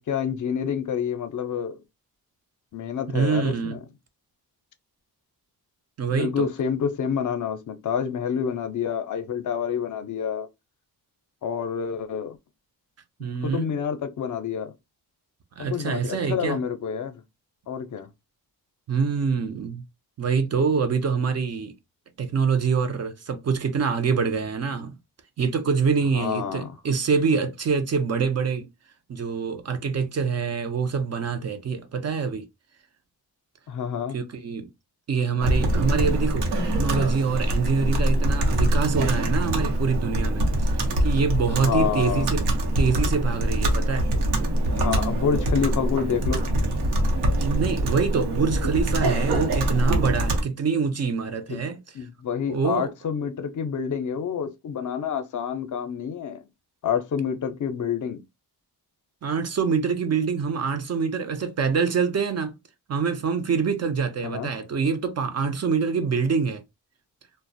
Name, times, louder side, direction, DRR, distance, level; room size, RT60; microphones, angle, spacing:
voice 1, 0.0-1.8 2.7-3.8 6.1-10.5 11.4-12.4 13.4-14.7 15.6-17.2 17.7-18.1 26.1-26.8 33.7-34.2 41.5-42.3 44.6-46.5 51.5-51.6 51.9-56.4 56.8-58.2 64.2-64.5, left 7 dB, 50° left, 0.5 m, -28 dB
voice 2, 3.1-3.8 6.0-6.5 13.2-13.7 15.6-16.6 18.9-19.8 20.2-21.7 22.2-25.0 25.4-28.7 29.1-32.4 34.1-34.7 35.1-42.4 42.8-44.1 47.4-51.8 52.5-52.9 59.2-62.5 62.9-66.6, right 5 dB, 40° right, 0.4 m, -25 dB
Computer keyboard, 35.4-50.4, right 1 dB, 90° right, 0.8 m, -24 dB
2.4 x 2.1 x 2.5 m
wide cardioid pair, 115°, 39 cm